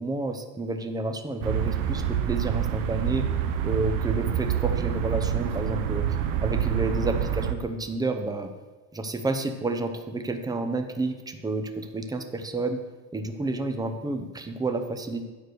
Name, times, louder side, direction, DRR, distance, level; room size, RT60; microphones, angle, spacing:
voice 1, 0.0-3.3 3.6-6.1 6.4-8.5 8.9-12.8 13.1-15.2, right 2 dB, 10° right, 7 dB, 0.7 m, -30 dB
sound 1, 1.4-7.5, right 10 dB, 75° right, 0.9 m, -27 dB
9.2 x 4.8 x 6.4 m, 1.3 s
cardioid pair, 130°, 35 cm